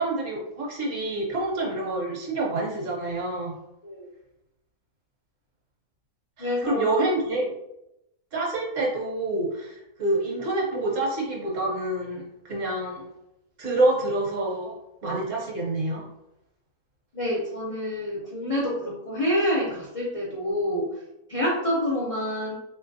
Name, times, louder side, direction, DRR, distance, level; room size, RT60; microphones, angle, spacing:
voice 1, 0.0-3.5 6.4-7.4 8.3-13.0 13.6-14.7 15.0-16.0, right 2 dB, 60° right, -3 dB, 1.2 m, -27 dB
voice 2, 6.4-7.0 7.3-7.4 17.1-20.9 21.3-22.6, left 1 dB, 65° left, -5 dB, 0.3 m, -27 dB
3.2 x 2.8 x 2.6 m, 0.86 s
omnidirectional pair, 1.6 m